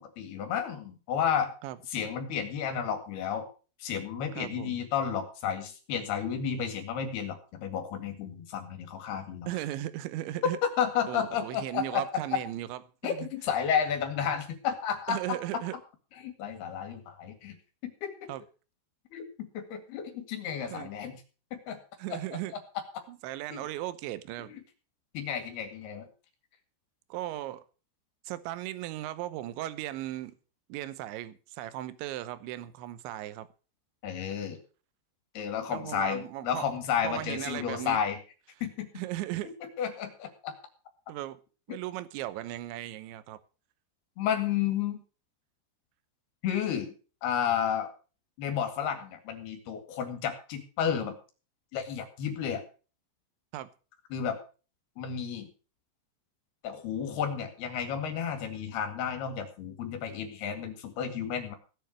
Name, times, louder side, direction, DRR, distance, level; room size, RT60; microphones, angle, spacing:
voice 1, 0.0-1.5 1.9-3.5 3.8-9.5 10.8-12.0 13.0-15.6 16.2-17.6 17.8-18.3 19.1-21.2 21.5-21.8 22.1-22.2 23.5-23.6 24.5-24.6 25.1-26.1 34.0-34.6 35.4-38.2 38.6-38.9 39.8-40.5 44.2-45.0 46.4-46.9 47.2-47.9 48.4-51.1 51.7-52.6 54.1-54.4 55.0-55.5 56.6-61.5, left 8 dB, 60° left, 6 dB, 3.8 m, -32 dB
voice 2, 4.3-4.8 9.5-10.6 11.1-13.3 15.1-15.8 18.3-18.4 20.7-20.9 22.0-22.6 23.1-24.5 27.1-27.6 28.2-30.4 30.7-33.5 35.7-36.7 37.0-38.0 39.0-39.5 41.1-41.4 41.7-43.4 53.5-53.7, right 14 dB, 75° right, 15 dB, 3.0 m, -37 dB
17.0 x 7.1 x 6.4 m, 0.36 s
omnidirectional pair, 5.7 m